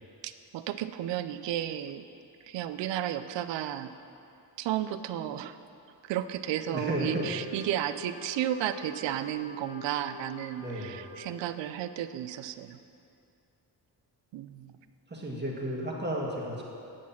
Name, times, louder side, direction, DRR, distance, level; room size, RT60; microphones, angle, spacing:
voice 1, 0.2-2.0 2.5-3.9 4.6-5.5 6.1-12.8 14.3-14.7, right 11 dB, 85° right, 11 dB, 0.5 m, -33 dB
Wind instrument woodwind instrument, 6.6-11.5, left 3 dB, 25° left, 2.2 m, -47 dB
voice 2, 6.7-7.4 10.6-11.0 15.1-16.6, right 1 dB, 25° right, -3 dB, 1.7 m, -33 dB
9.2 x 6.2 x 5.7 m, 2.6 s
cardioid pair, 70°, 42 cm